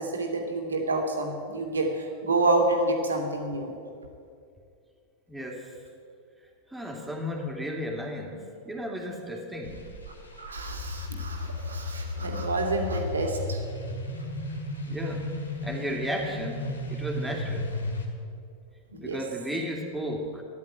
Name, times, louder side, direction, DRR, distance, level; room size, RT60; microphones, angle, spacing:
voice 1, 0.0-3.7 10.4-13.6 18.9-19.2, right 2 dB, 70° right, 3 dB, 2.4 m, -28 dB
voice 2, 5.3-5.7 6.7-8.4 8.7-9.8 14.9-15.3 15.6-17.7 19.0-20.4, equal, 5° right, 0 dB, 2.8 m, -34 dB
sound 1, 9.6-18.1, left 2 dB, 75° left, 2.2 m, -34 dB
14.0 x 11.0 x 9.0 m, 2.4 s
figure-of-eight pair, 90°, 0 cm